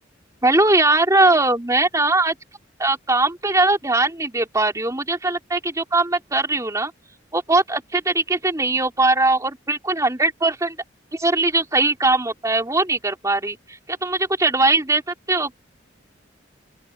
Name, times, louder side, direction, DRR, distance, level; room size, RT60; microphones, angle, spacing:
voice 1, 0.4-2.3 2.8-6.9 7.3-10.8 11.1-15.0 15.3-15.6, right 2 dB, 15° right, 3.5 m, -20 dB
open air
head